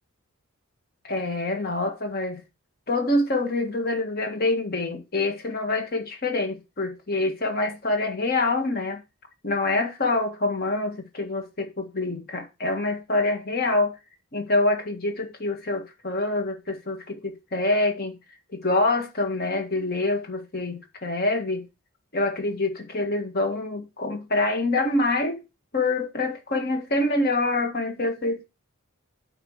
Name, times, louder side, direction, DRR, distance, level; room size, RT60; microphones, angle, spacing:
voice 1, 1.0-2.4 2.9-9.0 9.4-14.0 14.3-18.2 18.5-21.6 22.1-25.4 25.7-28.5, left 2 dB, 45° left, 1.8 m, -26 dB
8.7 x 5.0 x 5.0 m
head